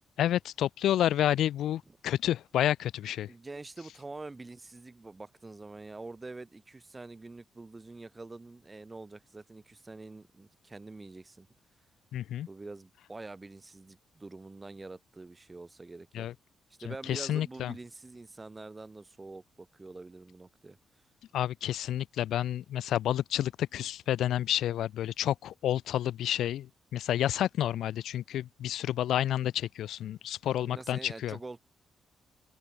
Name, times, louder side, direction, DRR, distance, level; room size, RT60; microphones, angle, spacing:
voice 1, 0.2-3.3 12.1-12.5 16.1-16.3 17.1-17.7 21.3-26.7 26.9-31.4, left 12 dB, 90° left, 0.3 m, -30 dB
voice 2, 3.3-11.5 12.5-16.3 16.8-20.8 30.6-31.6, right 3 dB, 15° right, 1.7 m, -46 dB
wide cardioid pair, 160°, 0 cm